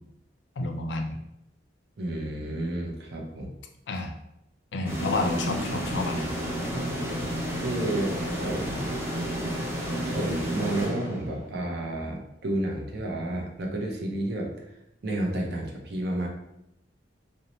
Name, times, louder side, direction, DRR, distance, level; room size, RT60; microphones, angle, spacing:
voice 1, 0.6-1.2 3.9-4.1 4.7-6.4 6.7-6.8, left 2 dB, 75° left, 4 dB, 0.4 m, -30 dB
voice 2, 2.0-3.5 7.5-8.9 10.0-14.5 15.0-16.3, right 1 dB, 65° right, 0 dB, 0.6 m, -31 dB
sound 1, 4.9-11.6, right 1 dB, 15° right, 0.5 m, -31 dB
2.6 x 2.0 x 3.0 m, 0.83 s
head